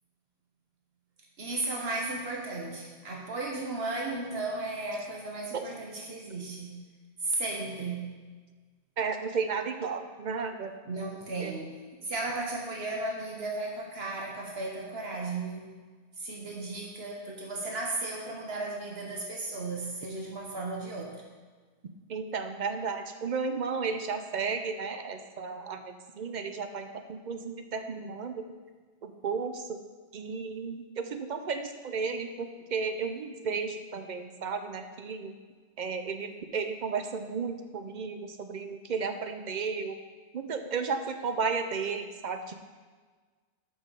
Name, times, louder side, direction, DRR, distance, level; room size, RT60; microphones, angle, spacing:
voice 1, 1.4-6.7 7.2-8.1 10.9-15.6 16.2-21.2, right 2 dB, 70° right, -1 dB, 1.3 m, -35 dB
voice 2, 9.0-10.7 11.4-11.5 22.1-28.5 29.0-29.8 30.1-35.3 35.8-40.0 40.3-42.7, right 5 dB, 50° right, 7 dB, 0.7 m, -33 dB
6.2 x 5.3 x 6.4 m, 1.4 s
omnidirectional pair, 1.1 m